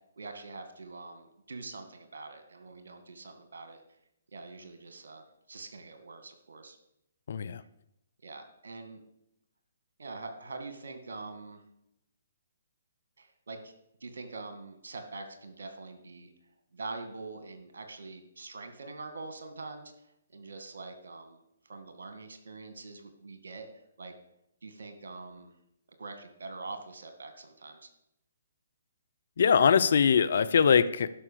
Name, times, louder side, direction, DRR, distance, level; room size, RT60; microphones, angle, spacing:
voice 1, 0.2-3.8 4.3-6.8 8.2-9.0 10.0-11.6 13.2-13.7 14.0-16.3 16.7-19.9 20.3-23.7 24.0-24.1 24.6-25.5 26.0-27.9, right 3 dB, 70° right, 7 dB, 2.0 m, -44 dB
voice 2, 7.3-7.6 29.4-31.1, left 7 dB, 60° left, 14 dB, 0.7 m, -22 dB
11.5 x 5.9 x 6.9 m, 0.82 s
figure-of-eight pair, 135°, 0 cm